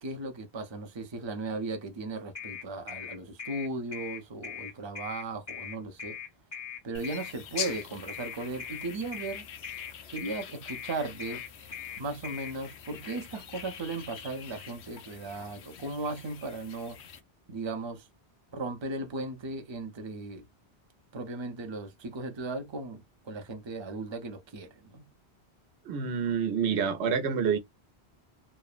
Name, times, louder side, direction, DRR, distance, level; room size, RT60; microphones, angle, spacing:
voice 1, 0.0-6.2 6.8-9.5 10.1-11.4 12.0-17.0 17.5-18.1 18.5-20.5 21.1-25.1, right 2 dB, 30° right, 0.6 m, -37 dB
sound 1, 2.4-12.5, left 8 dB, 50° left, 1.1 m, -40 dB
sound 2, 6.9-17.2, left 8 dB, 80° left, 0.9 m, -44 dB
voice 2, 25.9-27.6, right 6 dB, 85° right, 0.9 m, -27 dB
3.1 x 2.0 x 2.3 m
omnidirectional pair, 1.1 m